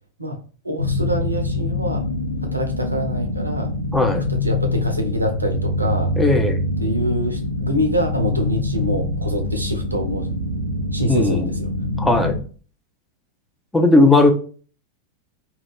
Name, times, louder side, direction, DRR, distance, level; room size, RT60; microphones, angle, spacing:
voice 1, 0.6-2.0 2.4-3.7 4.4-6.1 6.8-10.4 10.9-11.7, equal, 85° right, 4 dB, 0.5 m, -25 dB
sound 1, 0.8-12.4, left 2 dB, 80° left, 0.4 m, -25 dB
voice 2, 3.9-4.2 6.2-6.6 11.1-11.5 12.0-12.3 13.7-14.3, left 2 dB, 5° left, 4 dB, 0.4 m, -16 dB
2.3 x 2.1 x 3.4 m, 0.40 s
figure-of-eight pair, 90°, 0 cm